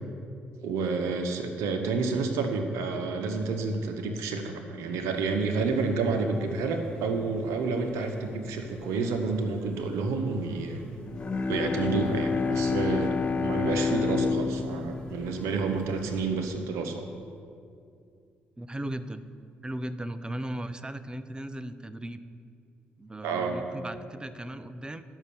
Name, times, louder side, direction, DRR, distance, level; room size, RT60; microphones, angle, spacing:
voice 1, 0.6-10.8 11.5-13.1 13.4-17.0 23.2-23.6, right 4 dB, 80° right, 5 dB, 0.8 m, -29 dB
sound 1, 5.1-16.3, left 1 dB, 15° left, 2.2 m, -49 dB
Bowed string instrument, 11.1-16.5, left 5 dB, 35° left, 0.5 m, -29 dB
voice 2, 18.6-19.3 19.6-22.2 23.0-25.0, right 1 dB, 20° right, 12 dB, 0.6 m, -37 dB
11.0 x 5.5 x 6.9 m, 2.4 s
supercardioid pair, 55°, 5 cm